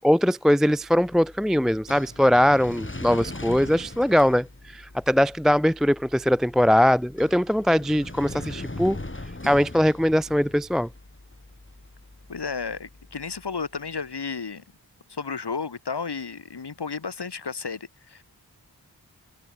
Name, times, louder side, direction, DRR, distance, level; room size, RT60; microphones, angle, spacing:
voice 1, 0.0-9.0 9.4-10.9, equal, ahead, 0.4 m, -21 dB
sound 1, 0.7-13.8, left 2 dB, 30° left, 5.7 m, -41 dB
voice 2, 12.3-14.6 15.1-18.2, left 5 dB, 80° left, 3.5 m, -33 dB
cardioid pair, 50°, 40 cm